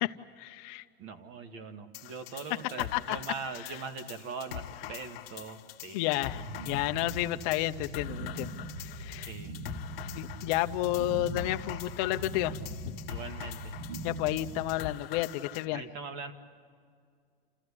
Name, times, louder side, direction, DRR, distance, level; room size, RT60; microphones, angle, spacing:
voice 1, 0.0-0.8 2.9-3.2 5.9-8.5 8.8-9.3 10.1-12.6 12.8-13.0 14.0-15.8, left 16 dB, 40° left, 9 dB, 0.8 m, -31 dB
voice 2, 1.0-6.0 9.2-9.6 13.1-13.7 15.7-16.3, right 5 dB, 40° right, 9 dB, 1.9 m, -41 dB
sound 1, 1.9-15.7, left 13 dB, 70° left, 1.3 m, -44 dB
sound 2, 6.1-14.7, right 1 dB, 70° right, 3.7 m, -41 dB
29.5 x 14.5 x 9.9 m, 2.1 s
supercardioid pair, 170°, 31 cm